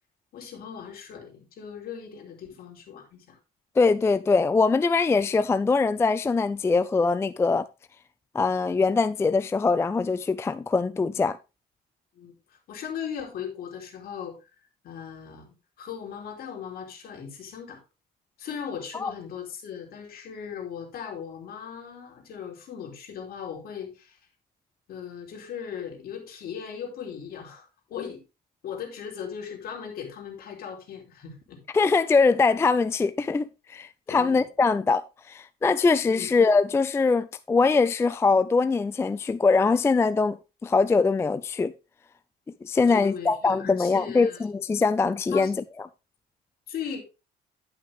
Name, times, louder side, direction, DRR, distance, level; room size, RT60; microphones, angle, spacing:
voice 1, 0.3-3.4 12.1-14.5 14.8-15.5 15.8-17.8 18.4-24.2 24.9-28.2 28.6-31.6 34.1-34.5 36.1-36.3 42.8-44.5 45.3-45.5 46.7-47.0, left 7 dB, 65° left, 2.8 m, -38 dB
voice 2, 3.8-7.6 8.3-11.4 18.9-19.1 31.7-41.7 42.6-45.6, left 4 dB, 15° left, 0.3 m, -22 dB
10.0 x 5.8 x 3.5 m
cardioid pair, 110°, 17 cm